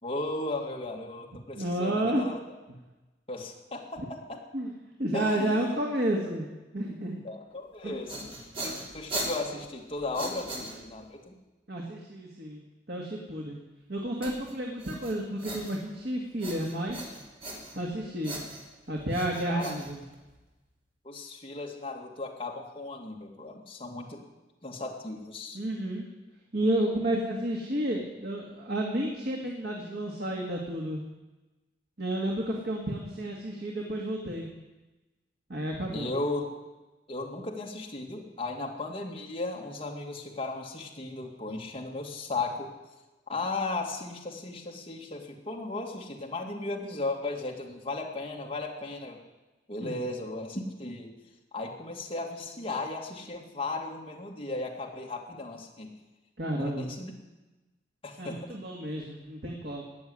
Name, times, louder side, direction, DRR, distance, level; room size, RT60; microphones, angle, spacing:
voice 1, 0.0-2.4 3.3-4.4 5.1-5.6 7.2-8.3 8.6-11.3 19.5-19.8 21.0-24.2 24.6-25.6 35.9-36.4 37.1-42.7 43.3-49.2 49.7-51.1 51.5-55.9 56.5-57.1 58.0-58.4, left 2 dB, 30° left, 0 dB, 2.3 m, -36 dB
voice 2, 1.6-2.3 2.7-2.8 4.0-4.1 4.5-4.7 5.0-6.5 6.7-7.2 7.8-8.0 11.7-13.6 13.9-17.1 17.8-18.4 18.9-20.0 25.5-26.1 26.5-31.0 32.0-34.5 35.5-36.1 49.8-50.0 56.4-56.9 58.2-59.8, right 1 dB, 60° right, -1 dB, 2.1 m, -31 dB
sound 1, 7.8-11.2 14.2-16.0 16.4-17.9 18.2-20.5, right 1 dB, 35° right, 3.1 m, -39 dB
18.5 x 7.1 x 9.7 m, 1.1 s
head